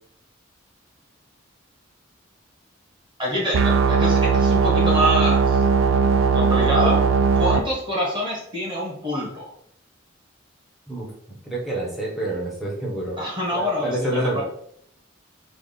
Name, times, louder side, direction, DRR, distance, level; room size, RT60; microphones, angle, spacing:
voice 1, 3.2-5.6 6.3-7.0 7.3-9.4 13.2-14.4, equal, 25° right, -4 dB, 1.4 m, -25 dB
sound 1, 3.5-7.6, right 5 dB, 85° right, 0.4 m, -18 dB
voice 2, 10.9-13.2 13.5-14.4, right 1 dB, ahead, -4 dB, 0.9 m, -28 dB
3.4 x 2.4 x 3.9 m, 0.69 s
head